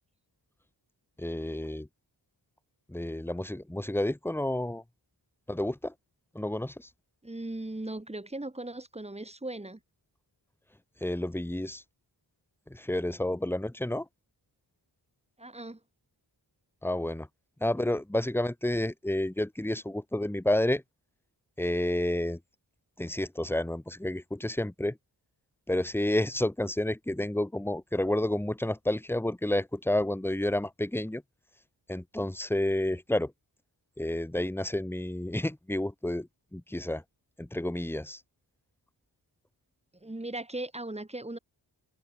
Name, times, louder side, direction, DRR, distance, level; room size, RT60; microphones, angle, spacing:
voice 1, 1.2-1.9 2.9-4.8 5.5-5.9 6.3-6.9 11.0-11.8 12.7-14.1 16.8-17.3 17.6-20.8 21.6-22.4 23.0-25.0 25.7-31.2 31.9-33.3 34.0-37.0 37.4-38.2, left 1 dB, 5° left, 1.1 m, -30 dB
voice 2, 7.2-9.8 15.4-15.8 40.0-41.4, right 2 dB, 15° right, 3.3 m, -38 dB
wide cardioid pair, 120°, 44 cm